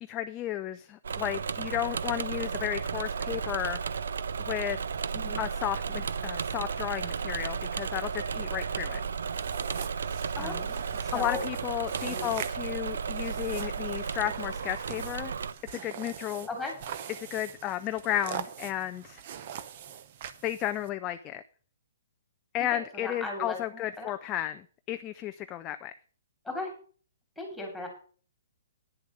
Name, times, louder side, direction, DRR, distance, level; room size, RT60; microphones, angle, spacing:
voice 1, 0.0-3.8 4.5-4.8 5.4-9.0 10.4-10.7 11.1-15.3 15.7-16.5 17.2-19.2 20.4-21.4 22.5-25.9, left 12 dB, 15° left, 9 dB, 0.4 m, -33 dB
Engine / Mechanisms, 1.0-15.5, right 6 dB, 75° right, 0.7 m, -34 dB
sound 1, 9.2-20.9, right 9 dB, 35° right, 0.8 m, -43 dB
voice 2, 11.0-11.4 12.0-12.3 16.5-16.7 22.6-24.1 26.4-26.7 27.4-27.9, left 2 dB, ahead, 1 dB, 3.0 m, -37 dB
10.0 x 7.0 x 6.3 m, 0.42 s
hypercardioid pair, 175°, 0 cm